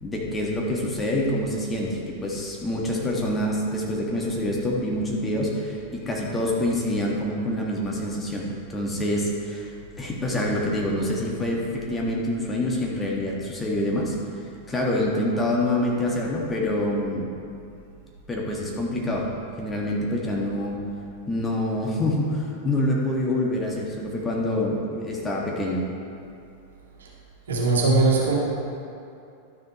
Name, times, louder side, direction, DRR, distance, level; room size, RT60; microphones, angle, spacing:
voice 1, 0.0-14.1 14.7-17.3 18.3-19.3 19.6-20.8 21.3-25.8, left 1 dB, 15° left, -3 dB, 1.5 m, -26 dB
voice 2, 27.5-28.4, right 3 dB, 65° right, -3 dB, 1.9 m, -20 dB
11.5 x 6.7 x 4.2 m, 2.6 s
figure-of-eight pair, 90°, 0 cm